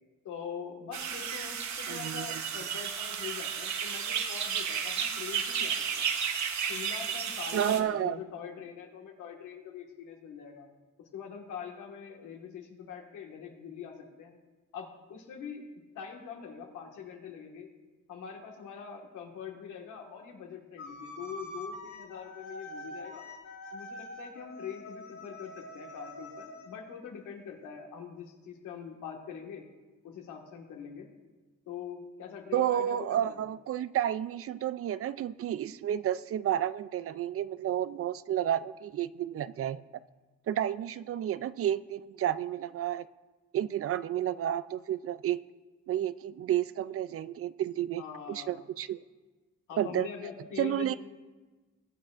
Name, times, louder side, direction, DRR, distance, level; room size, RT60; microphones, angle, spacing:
voice 1, 0.2-6.1 6.6-10.7 11.1-14.3 14.7-15.7 16.0-17.7 18.1-23.3 23.7-29.6 30.0-31.1 31.7-33.5 48.0-48.7 49.7-51.0, left 7 dB, 85° left, 1 dB, 1.8 m, -43 dB
sound 1, 0.9-7.8, right 7 dB, 70° right, 1.1 m, -33 dB
voice 2, 1.9-2.4 7.5-8.2 32.5-39.8 40.5-43.1 43.5-45.4 45.9-48.0 48.3-49.0 49.8-50.1 50.6-51.0, right 11 dB, 50° right, 16 dB, 0.4 m, -31 dB
sound 2, 20.8-26.7, left 1 dB, 70° left, 2.8 m, -45 dB
21.0 x 8.7 x 2.5 m, 1.3 s
cardioid pair, 90°, 30 cm